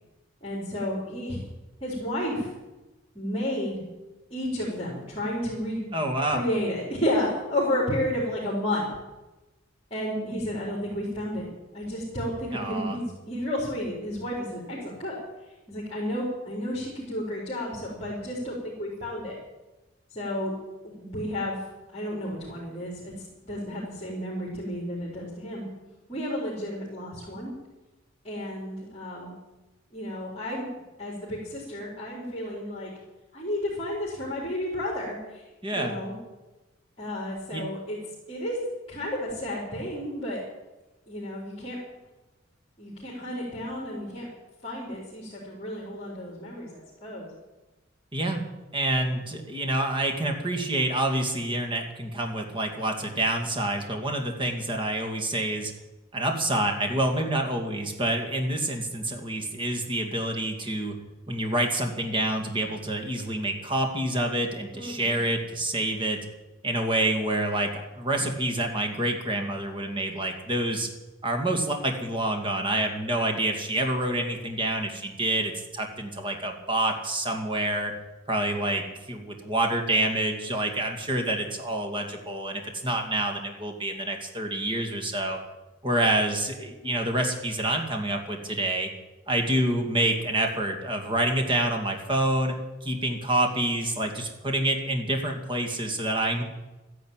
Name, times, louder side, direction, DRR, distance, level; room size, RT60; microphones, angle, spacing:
voice 1, 0.4-1.4 1.8-2.5 3.1-3.8 4.3-5.9 6.2-8.8 9.9-11.4 11.7-15.1 15.7-19.4 20.1-20.5 20.8-21.6 21.9-25.7 26.1-27.5 28.2-29.3 29.9-30.7 31.0-32.9 33.3-35.4 35.7-36.2 37.0-38.0 38.3-38.6 38.9-40.4 41.1-41.8 42.8-44.3 44.6-47.3 64.7-65.2 78.8-78.9, left 1 dB, 30° left, -5 dB, 4.1 m, -32 dB
voice 2, 5.9-6.4 12.5-13.0 35.6-36.0 37.5-37.7 48.1-48.4 48.7-55.7 56.1-61.0 61.3-66.2 66.6-70.9 71.2-77.9 78.3-85.4 85.8-88.9 89.3-92.6 92.8-96.4, right 1 dB, 25° right, 3 dB, 2.3 m, -27 dB
13.5 x 11.0 x 9.1 m, 1.1 s
head